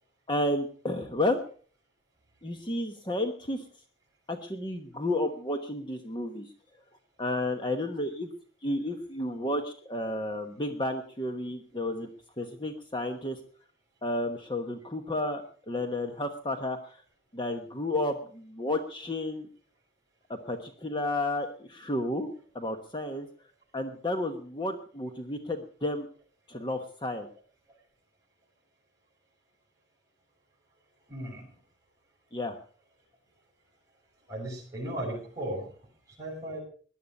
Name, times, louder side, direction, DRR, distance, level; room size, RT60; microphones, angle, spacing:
voice 1, 0.3-1.4 2.4-3.7 4.3-6.5 7.2-8.3 8.6-12.1 12.4-13.4 14.0-17.0 17.3-19.5 20.3-22.3 22.5-23.3 23.7-26.1 26.5-27.3 32.3-32.6, left 1 dB, 25° left, 6 dB, 1.1 m, -32 dB
voice 2, 31.1-31.5 34.3-35.7 36.2-36.6, right 1 dB, 15° right, -3 dB, 6.5 m, -36 dB
18.5 x 11.5 x 5.4 m, 0.43 s
head